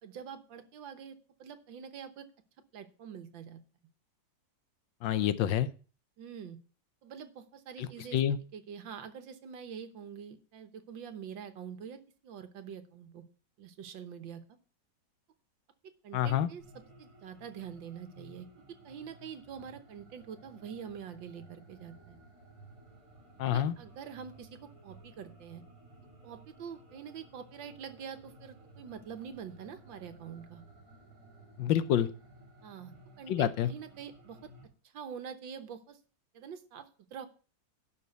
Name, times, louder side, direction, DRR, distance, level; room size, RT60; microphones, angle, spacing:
voice 1, 0.0-2.3 2.7-3.6 6.2-6.6 7.0-8.2 8.5-13.2 13.6-14.6 16.0-18.5 18.8-22.2 23.5-25.6 26.2-30.6 32.6-34.5 34.9-36.0 36.3-37.3, right 7 dB, 80° right, 10 dB, 1.8 m, -45 dB
voice 2, 5.0-5.7 7.8-7.9 8.1-8.4 16.1-16.5 23.4-23.7 31.6-32.1 33.3-33.7, left 10 dB, 80° left, 14 dB, 1.4 m, -27 dB
sound 1, 16.6-34.6, right 2 dB, 40° right, 4.5 m, -56 dB
11.5 x 4.2 x 8.0 m, 0.38 s
omnidirectional pair, 2.0 m